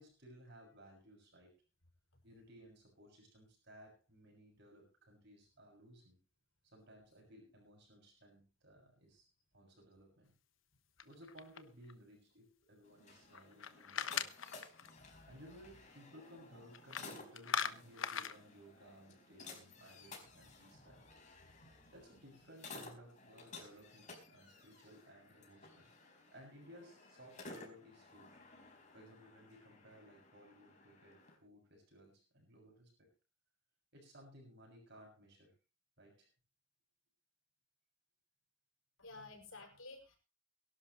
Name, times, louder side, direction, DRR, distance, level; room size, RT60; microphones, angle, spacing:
voice 1, 0.0-1.5 2.2-6.2 6.6-9.3 9.5-10.3 11.0-14.4 15.3-21.0 21.9-25.9 26.3-28.4 28.9-33.1 33.9-35.5 36.0-36.3, equal, 55° right, 1 dB, 6.6 m, -59 dB
sound 1, 11.0-11.9 13.3-14.9 16.7-17.1 17.3-18.4, left 7 dB, 70° left, 1.1 m, -40 dB
sound 2, 12.8-31.3, left 3 dB, 35° left, 4.8 m, -56 dB
voice 2, 39.0-40.2, left 3 dB, 85° left, 3 dB, 6.1 m, -53 dB
23.0 x 12.0 x 3.2 m, 0.31 s
head